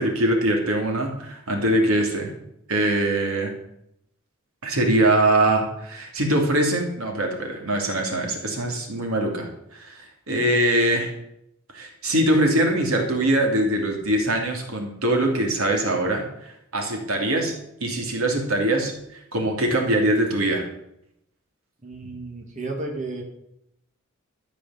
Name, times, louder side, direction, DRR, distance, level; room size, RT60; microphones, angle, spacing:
voice 1, 0.0-2.3 2.7-3.5 4.6-10.0 10.3-11.1 11.7-17.5 17.8-18.9 19.3-20.7, right 1 dB, 80° right, 2 dB, 2.8 m, -22 dB
voice 2, 21.8-23.2, right 2 dB, 35° right, 1 dB, 2.5 m, -32 dB
13.0 x 7.0 x 7.5 m, 0.77 s
head